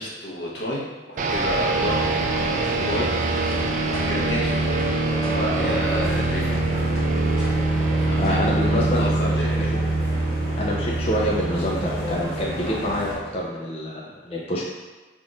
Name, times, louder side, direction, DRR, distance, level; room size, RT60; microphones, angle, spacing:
voice 1, 0.0-3.1 3.9-4.7 5.3-6.4 8.0-8.5 8.8-9.8, left 1 dB, 80° left, -4 dB, 0.9 m, -30 dB
sound 1, 1.2-13.4, right 2 dB, 45° right, 0.3 m, -24 dB
sound 2, 1.3-13.2, equal, 50° left, 1.3 m, -33 dB
sound 3, 1.8-8.9, equal, 5° right, 1.0 m, -40 dB
voice 2, 8.2-9.7 10.6-14.7, equal, 35° left, -4 dB, 0.4 m, -27 dB
3.5 x 2.5 x 3.8 m, 1.3 s
head